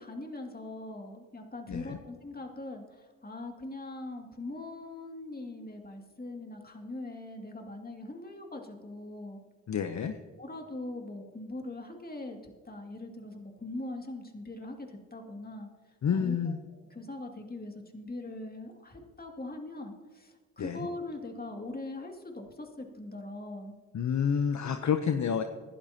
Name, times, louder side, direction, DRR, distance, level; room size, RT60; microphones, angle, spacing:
voice 1, 0.0-9.4 10.4-15.7 16.1-23.7, left 2 dB, 25° left, 2 dB, 2.4 m, -41 dB
voice 2, 9.7-10.2 16.0-16.6 20.6-20.8 23.9-25.4, left 7 dB, 50° left, 8 dB, 0.8 m, -29 dB
20.0 x 11.5 x 2.9 m, 1.4 s
supercardioid pair, 45°, 37 cm